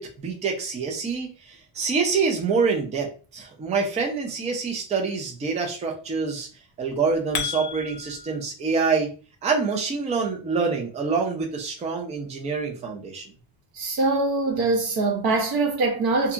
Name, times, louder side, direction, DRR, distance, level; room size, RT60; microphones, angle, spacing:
voice 1, 0.0-6.5 6.8-9.1 9.4-13.3, right 5 dB, 15° right, 0.3 m, -26 dB
sound 1, 6.9-8.4, left 7 dB, 50° left, 0.6 m, -32 dB
voice 2, 13.8-16.3, right 3 dB, 50° right, 0.9 m, -23 dB
2.7 x 2.3 x 2.4 m
cardioid pair, 155°, 47 cm